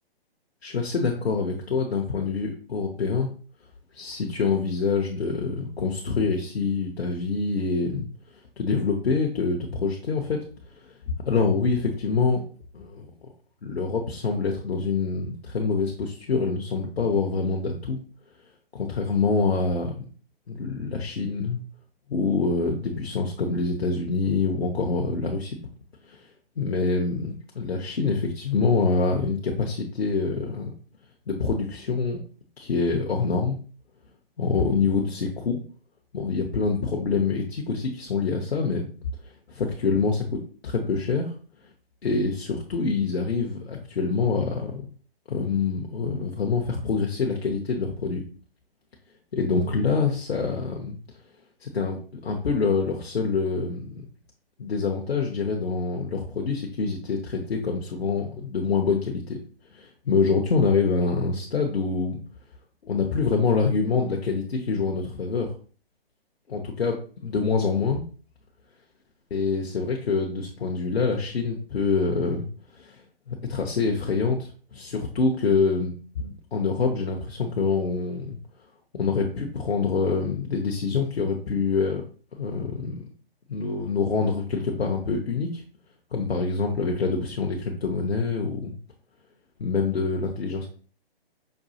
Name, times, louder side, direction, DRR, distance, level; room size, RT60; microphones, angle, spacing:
voice 1, 0.6-3.3 3.9-8.1 8.6-10.4 10.8-10.9 11.3-12.4 12.7-13.1 13.6-18.0 18.7-20.0 20.5-21.6 22.1-25.6 26.1-26.3 26.6-30.7 31.3-32.2 32.6-33.6 34.4-35.6 36.1-38.9 39.5-41.3 42.0-44.9 45.3-48.2 49.3-51.0 51.6-54.1 54.6-59.4 59.7-62.2 62.8-65.5 66.5-67.0 67.2-68.0 69.3-72.5 72.7-73.0 73.3-78.4 78.9-82.0 82.4-83.1 83.5-85.6 86.1-88.8 89.6-90.7, left 4 dB, 80° left, 1 dB, 0.7 m, -26 dB
5.2 x 2.3 x 2.7 m, 0.40 s
figure-of-eight pair, 135°, 31 cm